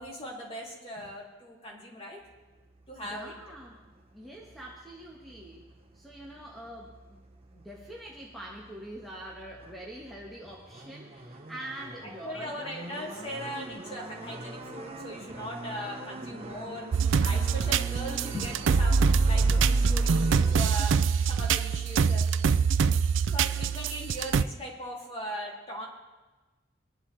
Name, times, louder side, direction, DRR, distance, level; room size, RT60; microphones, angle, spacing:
voice 1, 0.0-2.2 2.9-3.4 12.2-16.9 17.2-21.0 21.3-22.2 23.3-25.9, equal, 30° left, -2 dB, 2.8 m, -39 dB
sound 1, 2.2-20.5, right 2 dB, 30° right, 1.0 m, -45 dB
voice 2, 3.0-3.8 4.1-12.8 23.4-23.8, right 1 dB, ahead, -3 dB, 1.4 m, -45 dB
sound 2, 16.9-24.4, right 5 dB, 70° right, 0.4 m, -24 dB
22.5 x 11.0 x 3.4 m, 1.2 s
head